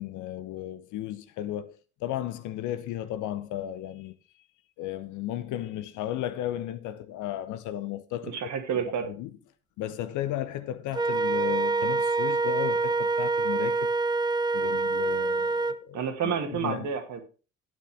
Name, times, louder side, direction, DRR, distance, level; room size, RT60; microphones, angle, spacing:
voice 1, 0.0-4.1 4.8-8.4 9.1-9.3 9.8-13.9 14.5-16.9, left 12 dB, 50° left, 0.8 m, -34 dB
voice 2, 8.3-9.1 15.9-17.2, right 7 dB, 45° right, 2.1 m, -30 dB
Wind instrument woodwind instrument, 10.9-15.8, right 3 dB, 10° right, 0.5 m, -26 dB
11.0 x 9.1 x 3.5 m
figure-of-eight pair, 50°, 39 cm